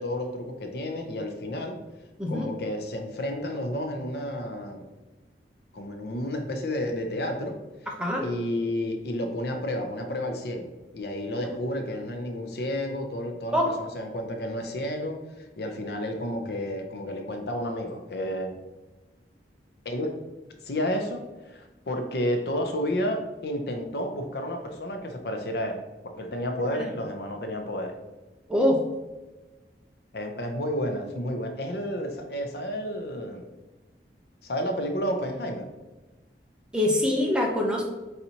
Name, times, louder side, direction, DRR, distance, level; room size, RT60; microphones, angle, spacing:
voice 1, 0.0-1.8 2.3-4.8 5.7-7.6 8.2-10.7 10.9-15.2 15.6-18.5 19.8-20.1 20.6-25.8 26.2-27.9 30.1-33.4 34.4-35.7, left 1 dB, 65° left, 5 dB, 0.6 m, -31 dB
voice 2, 2.2-2.5 8.0-8.3 13.5-13.7 26.6-26.7 28.5-28.8 36.7-37.9, left 1 dB, 5° right, -1 dB, 0.6 m, -24 dB
4.3 x 4.0 x 2.8 m, 1.1 s
head